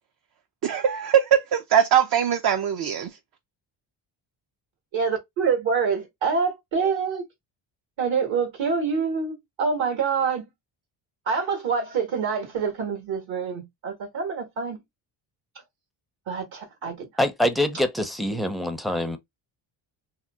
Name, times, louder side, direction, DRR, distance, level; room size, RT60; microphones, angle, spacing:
voice 1, 0.6-3.2, right 9 dB, 50° right, 0.5 m, -21 dB
voice 2, 4.9-7.2 8.0-10.5 11.3-14.8 16.3-17.1, right 5 dB, 65° right, 1.4 m, -26 dB
voice 3, 17.2-19.2, left 1 dB, ahead, 0.5 m, -25 dB
2.8 x 2.0 x 3.5 m
cardioid pair, 90°, 48 cm